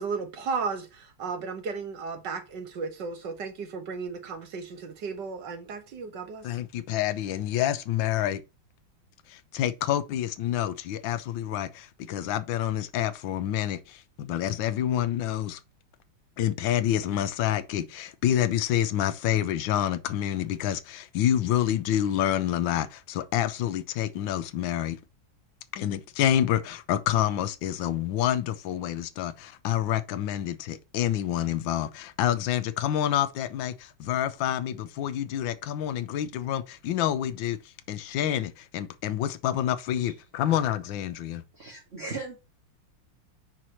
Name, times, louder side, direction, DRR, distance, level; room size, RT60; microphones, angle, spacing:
voice 1, 0.0-6.5, right 5 dB, 60° right, 1.7 m, -34 dB
voice 2, 6.4-8.4 9.3-15.6 16.4-25.0 25.7-37.6 37.9-41.4, left 11 dB, 70° left, 1.4 m, -28 dB
voice 3, 41.5-42.4, right 3 dB, 30° right, 2.2 m, -37 dB
5.1 x 4.7 x 5.6 m
omnidirectional pair, 2.2 m